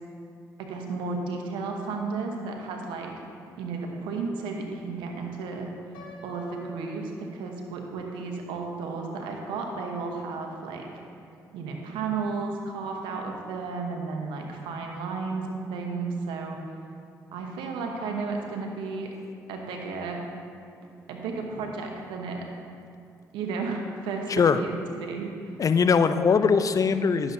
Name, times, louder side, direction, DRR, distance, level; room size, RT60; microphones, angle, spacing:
voice 1, 0.6-3.1 3.6-5.7 6.2-10.8 11.5-16.6 17.3-19.1 19.5-20.2 21.1-22.4 23.3-24.3 24.5-25.6, right 4 dB, 80° right, 2 dB, 1.0 m, -33 dB
Piano, 5.9-7.9, left 2 dB, 80° left, 1.1 m, -48 dB
voice 2, 24.3-24.6 25.6-27.3, left 5 dB, 45° left, 11 dB, 0.4 m, -21 dB
11.0 x 7.0 x 2.7 m, 2.4 s
supercardioid pair, 50°, 8 cm